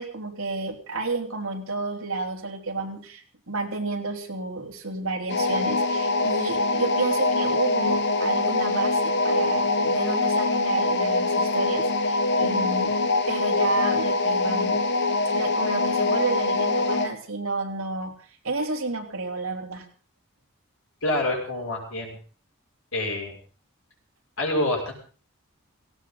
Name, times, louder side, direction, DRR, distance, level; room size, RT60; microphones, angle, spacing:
voice 1, 0.0-14.8 15.3-18.1 18.4-19.8, right 3 dB, 85° right, 2 dB, 3.2 m, -30 dB
sound 1, 5.3-17.2, left 2 dB, 55° left, 1.1 m, -24 dB
voice 2, 21.0-22.2 22.9-23.4 24.4-24.9, left 1 dB, 80° left, 0 dB, 6.6 m, -27 dB
18.5 x 16.5 x 4.0 m, 0.40 s
head